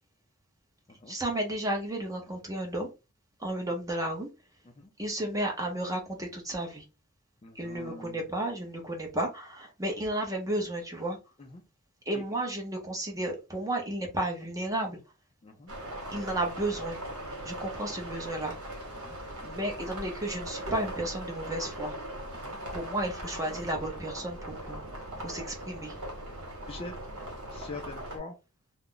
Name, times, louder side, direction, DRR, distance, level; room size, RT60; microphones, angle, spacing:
voice 1, 1.1-2.9 3.4-4.3 5.0-6.8 7.5-11.2 12.1-15.0 16.1-17.0 17.4-18.5 19.4-21.9 22.7-24.9 25.2-25.9, right 1 dB, 15° right, 2 dB, 0.6 m, -33 dB
voice 2, 7.4-8.2 11.4-11.6 12.1-12.2 15.4-15.7 18.9-19.2 22.3-22.6 26.7-26.9 27.5-28.4, left 3 dB, 25° left, 3 dB, 0.3 m, -44 dB
sound 1, 15.7-28.2, right 1 dB, 70° right, 1.1 m, -40 dB
2.3 x 2.0 x 3.7 m, 0.29 s
head